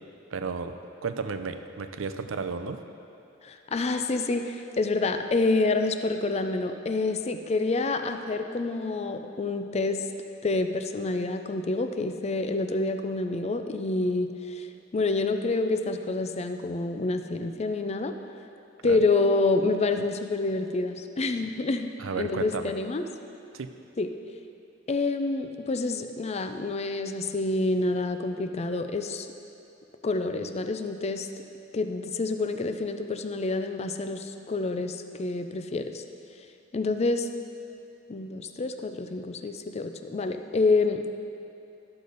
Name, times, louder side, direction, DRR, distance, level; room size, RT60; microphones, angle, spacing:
voice 1, 0.3-0.7 1.0-2.8 18.8-19.0 22.0-22.7 23.5-23.7, right 5 dB, 85° right, 8 dB, 0.5 m, -33 dB
voice 2, 3.4-10.0 10.4-14.7 14.9-18.2 18.8-23.0 24.0-24.1 24.9-29.3 30.0-31.3 31.7-36.0 36.7-37.3 38.1-41.1, left 3 dB, 35° left, 7 dB, 0.4 m, -27 dB
12.0 x 6.7 x 4.0 m, 2.7 s
head